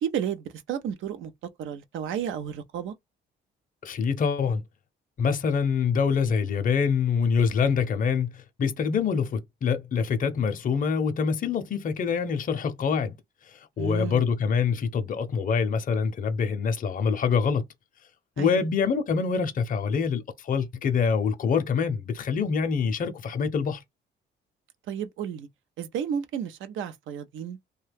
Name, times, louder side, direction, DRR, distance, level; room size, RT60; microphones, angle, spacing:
voice 1, 0.0-1.3 1.6-2.9 13.8-14.2 18.4-18.7 24.9-25.5 25.8-27.6, right 8 dB, 75° right, 0.5 m, -32 dB
voice 2, 3.8-4.6 5.2-13.1 13.8-17.6 18.4-23.8, left 6 dB, 45° left, 0.6 m, -25 dB
2.7 x 2.2 x 3.3 m
cardioid pair, 90°, 20 cm